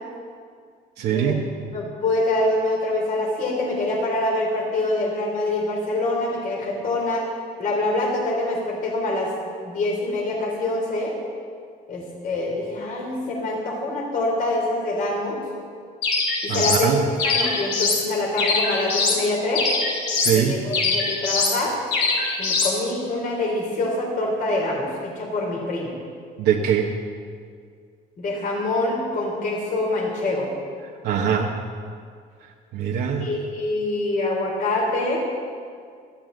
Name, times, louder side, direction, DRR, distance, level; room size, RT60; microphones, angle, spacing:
voice 1, 1.0-1.4 16.5-17.0 20.2-20.6 26.4-26.9 31.0-31.5 32.7-33.3, right 8 dB, 75° right, -1 dB, 1.2 m, -22 dB
voice 2, 1.7-7.2 7.6-9.3 9.7-11.1 11.9-15.4 16.4-16.9 17.2-19.7 20.3-21.7 22.4-25.9 28.2-30.5 33.2-35.2, left 2 dB, 55° left, -1 dB, 3.7 m, -25 dB
sound 1, 16.0-16.8 17.2-18.0 18.4-19.2 19.5-20.4 20.7-21.6 21.9-22.7, left 4 dB, 85° left, 2.8 m, -23 dB
18.0 x 13.5 x 4.0 m, 2.1 s
cardioid pair, 110°, 17 cm